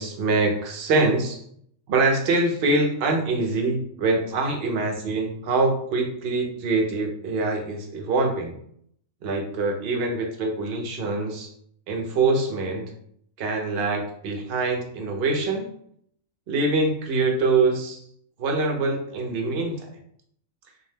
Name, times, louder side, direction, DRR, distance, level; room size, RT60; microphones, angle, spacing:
voice 1, 0.0-1.4 1.9-8.6 9.2-11.5 11.9-12.9 13.4-15.7 16.5-18.0 18.4-19.9, right 3 dB, 60° right, 2 dB, 0.7 m, -24 dB
2.7 x 2.0 x 3.2 m, 0.66 s
omnidirectional pair, 1.4 m